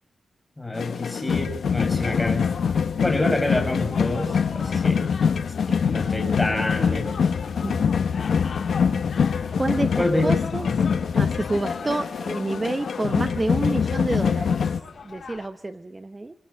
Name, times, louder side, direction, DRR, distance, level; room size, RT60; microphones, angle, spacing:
voice 1, 0.6-2.5 2.8-5.0 5.8-7.1 9.7-10.2 10.7-10.8, left 1 dB, 15° left, 4 dB, 6.5 m, -27 dB
sound 1, 0.7-14.8, left 6 dB, 80° left, 1.1 m, -24 dB
sound 2, 2.0-15.5, left 5 dB, 60° left, 3.3 m, -41 dB
voice 2, 7.6-7.9 9.6-10.7 11.1-14.6 15.0-16.3, right 2 dB, 20° right, 8 dB, 1.0 m, -28 dB
27.5 x 26.5 x 5.6 m, 0.63 s
wide cardioid pair, 135°, 0 cm